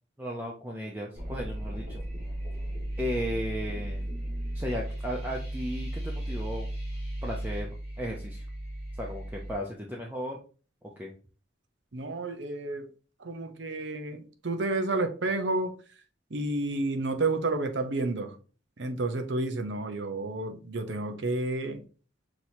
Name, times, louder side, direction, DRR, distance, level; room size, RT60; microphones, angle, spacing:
voice 1, 0.2-2.0 3.0-4.0 4.5-6.7 7.2-8.4 9.0-10.4 11.0-11.1, equal, 10° right, 0.5 m, -35 dB
sound 1, 1.1-9.5, right 1 dB, 35° right, 1.8 m, -35 dB
voice 2, 11.9-12.9 13.2-15.7 16.3-18.4 18.8-21.8, right 2 dB, 70° right, 0.7 m, -30 dB
6.0 x 2.9 x 2.7 m
head